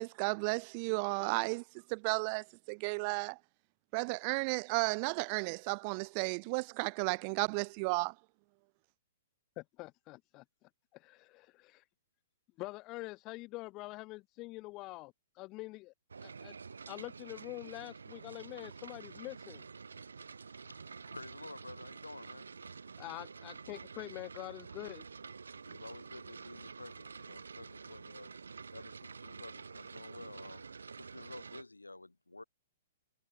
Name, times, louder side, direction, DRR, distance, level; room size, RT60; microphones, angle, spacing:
voice 1, 0.0-1.6 1.9-3.4 3.9-8.1, right 35 dB, 40° right, 0.6 m, -33 dB
voice 2, 9.6-11.8 12.6-15.9 16.2-16.6 16.9-19.6 23.0-25.0, left 21 dB, 30° left, 0.8 m, -45 dB
sound 1, 16.1-31.6, right 5 dB, 75° right, 1.5 m, -49 dB
voice 3, 20.6-22.5 25.6-28.3 28.7-30.7 31.0-32.4, left 2 dB, 90° left, 2.8 m, -51 dB
figure-of-eight pair, 115°, 0 cm